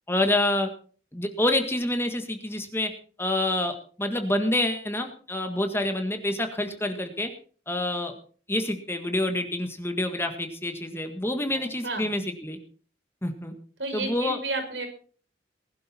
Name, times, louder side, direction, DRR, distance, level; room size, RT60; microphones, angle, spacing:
voice 1, 0.1-0.7 1.1-2.9 3.2-7.3 7.7-8.1 8.5-12.6 13.2-13.5 13.9-14.4, left 1 dB, 15° left, 6 dB, 1.6 m, -27 dB
voice 2, 13.8-14.9, right 3 dB, 85° right, 5 dB, 5.8 m, -31 dB
20.5 x 11.5 x 4.4 m, 0.42 s
head